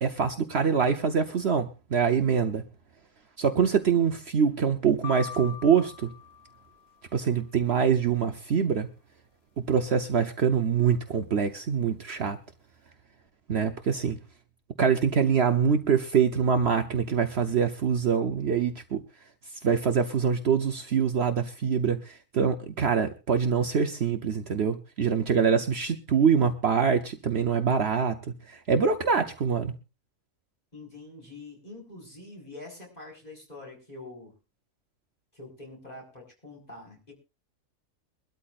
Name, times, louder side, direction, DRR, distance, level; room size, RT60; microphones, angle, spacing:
voice 1, 0.0-2.6 3.4-6.1 7.1-8.9 9.6-12.4 13.5-14.2 14.8-19.0 19.6-28.2 28.5-29.7, right 6 dB, 55° right, 7 dB, 1.0 m, -24 dB
sound 1, 5.0-7.2, left 8 dB, 75° left, 1.2 m, -42 dB
voice 2, 30.7-34.3 35.3-37.1, left 2 dB, 30° left, 0 dB, 5.1 m, -45 dB
23.0 x 13.0 x 2.5 m, 0.29 s
omnidirectional pair, 1.4 m